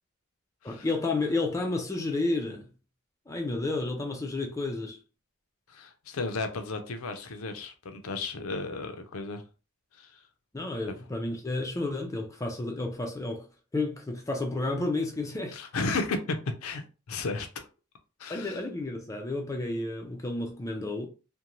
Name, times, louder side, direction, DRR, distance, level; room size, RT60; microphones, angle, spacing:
voice 1, 0.6-2.7 3.3-5.0 10.5-15.6 18.3-21.1, left 2 dB, 15° left, 0.4 m, -31 dB
voice 2, 5.7-9.4 10.0-10.1 10.9-11.0 15.5-16.4 16.6-17.5 18.2-18.6, left 3 dB, 80° left, 0.6 m, -34 dB
2.6 x 2.1 x 2.9 m
head